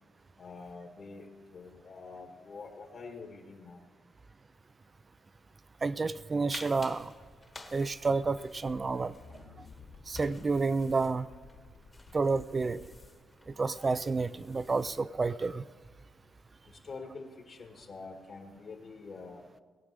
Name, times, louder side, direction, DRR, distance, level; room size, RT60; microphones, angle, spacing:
voice 1, 0.4-1.3 1.5-3.8 16.8-19.4, left 4 dB, 45° left, 4 dB, 1.7 m, -46 dB
voice 2, 5.8-7.1 7.7-9.1 10.1-11.3 12.1-12.8 13.5-15.6, right 4 dB, 25° right, 15 dB, 0.4 m, -30 dB
sound 1, 6.5-15.0, left 2 dB, 20° left, 1.2 m, -52 dB
sound 2, 7.8-13.1, left 5 dB, 65° left, 2.8 m, -54 dB
18.0 x 8.8 x 6.6 m, 1.5 s
cardioid pair, 115°, 0 cm